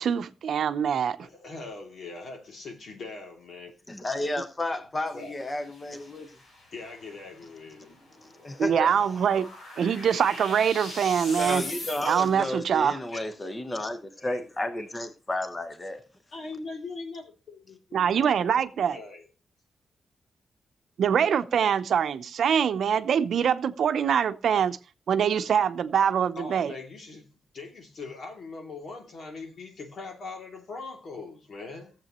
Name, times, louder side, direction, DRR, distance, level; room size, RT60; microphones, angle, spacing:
voice 1, 0.0-1.2 8.6-9.5 9.8-11.6 12.0-13.0 17.9-19.0 21.0-24.8 25.1-26.7, right 8 dB, 80° right, 0.7 m, -24 dB
voice 2, 1.2-3.7 5.1-5.3 6.7-8.0 13.1-14.4 14.7-14.9 16.3-18.6 18.9-19.3 26.4-27.2 27.5-31.9, left 3 dB, 60° left, 2.7 m, -41 dB
voice 3, 3.9-6.3 8.4-9.0 11.3-16.0, left 1 dB, 20° left, 1.1 m, -32 dB
sound 1, 5.1-12.5, left 2 dB, 80° left, 4.6 m, -43 dB
17.0 x 7.6 x 3.0 m
wide cardioid pair, 140°, 0 cm